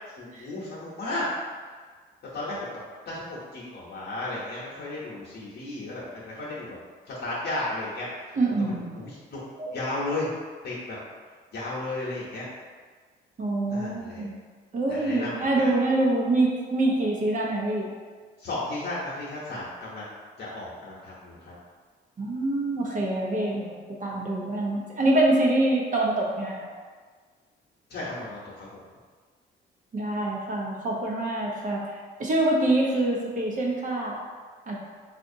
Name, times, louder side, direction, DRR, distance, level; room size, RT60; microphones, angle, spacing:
voice 1, 0.2-1.2 2.3-2.8 3.1-6.8 7.1-8.4 8.8-9.4 9.7-10.3 10.6-11.0 11.5-12.5 13.7-14.2 14.9-15.7 18.4-21.5 27.9-28.8, left 2 dB, 60° left, -8 dB, 0.9 m, -34 dB
voice 2, 8.3-8.9 9.6-9.7 13.4-14.3 14.7-17.9 22.2-26.7 29.9-31.8 32.2-34.2 34.7-34.8, right 2 dB, 40° right, -3 dB, 0.8 m, -25 dB
3.9 x 2.5 x 2.6 m, 1.5 s
cardioid pair, 90°, 20 cm